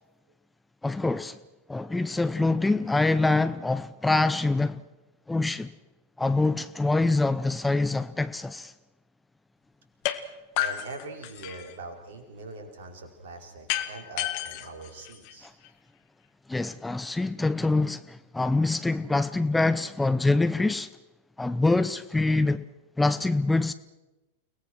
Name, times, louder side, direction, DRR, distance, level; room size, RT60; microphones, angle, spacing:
voice 1, 0.8-1.4 1.7-4.8 5.3-5.7 6.2-8.7 15.4-15.5 16.5-20.9 21.4-22.6 23.0-23.7, left 2 dB, 5° left, 0.7 m, -25 dB
sound 1, 10.0-10.2 10.6-11.8 13.7-15.7, left 13 dB, 45° left, 1.7 m, -31 dB
voice 2, 10.2-15.5, right 3 dB, 55° right, 4.7 m, -42 dB
30.0 x 19.0 x 6.3 m
figure-of-eight pair, 90°, 0 cm